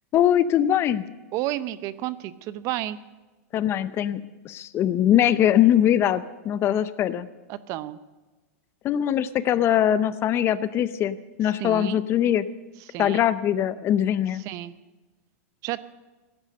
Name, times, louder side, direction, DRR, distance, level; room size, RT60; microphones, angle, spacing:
voice 1, 0.1-1.0 3.5-7.3 8.8-12.4 13.0-14.4, left 11 dB, 30° left, 15 dB, 0.6 m, -22 dB
voice 2, 1.3-3.0 7.5-8.0 11.6-12.0 12.9-13.2 14.4-14.7 15.6-15.8, right 14 dB, 40° right, 15 dB, 0.7 m, -31 dB
17.0 x 10.5 x 6.6 m, 1.2 s
supercardioid pair, 135°, 8 cm